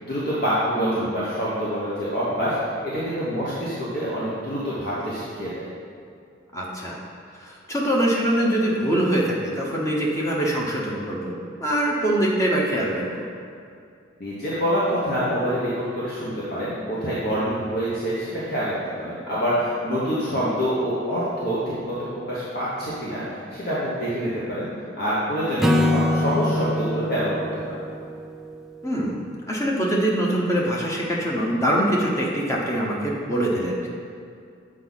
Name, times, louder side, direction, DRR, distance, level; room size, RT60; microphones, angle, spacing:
voice 1, 0.0-5.7 14.2-21.9 22.3-24.7 25.0-27.3 27.6-27.8, equal, 55° left, -9 dB, 1.2 m, -26 dB
voice 2, 0.7-1.1 6.5-7.0 7.3-11.3 11.6-13.3 20.3-20.4 25.7-25.9 28.8-29.2 29.5-33.9, right 1 dB, 15° left, -4 dB, 1.0 m, -24 dB
Acoustic guitar / Strum, 25.6-28.9, left 1 dB, ahead, 0.3 m, -24 dB
7.8 x 4.9 x 4.0 m, 2.4 s
head